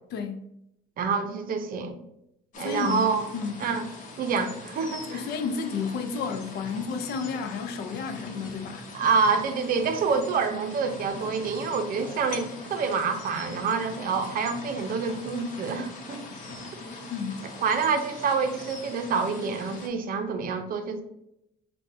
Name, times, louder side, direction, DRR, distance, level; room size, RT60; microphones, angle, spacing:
voice 1, 0.1-0.4 2.6-3.1 3.3-3.6 5.1-8.9 17.1-17.4, left 5 dB, 70° left, 0.5 m, -31 dB
voice 2, 1.0-1.9 2.6-3.2 3.6-3.9 4.2-5.3 8.9-16.2 17.6-21.0, right 5 dB, 55° right, 0.6 m, -27 dB
sound 1, 2.5-19.9, left 2 dB, 50° left, 0.9 m, -41 dB
5.3 x 2.3 x 2.6 m
cardioid pair, 110°, 17 cm